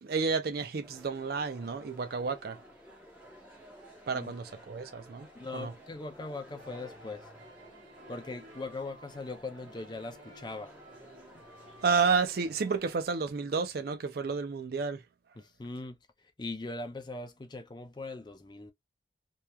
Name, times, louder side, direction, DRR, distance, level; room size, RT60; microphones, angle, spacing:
voice 1, 0.0-2.6 4.1-5.3 5.5-5.7 11.8-15.0, right 5 dB, 55° right, 0.4 m, -31 dB
sound 1, 0.8-13.0, equal, 10° right, 0.8 m, -54 dB
voice 2, 5.4-7.2 8.1-10.7 15.4-16.0 16.4-18.7, left 3 dB, 25° left, 0.4 m, -40 dB
sound 2, 6.6-11.9, right 1 dB, 80° right, 1.2 m, -54 dB
2.9 x 2.3 x 2.3 m
head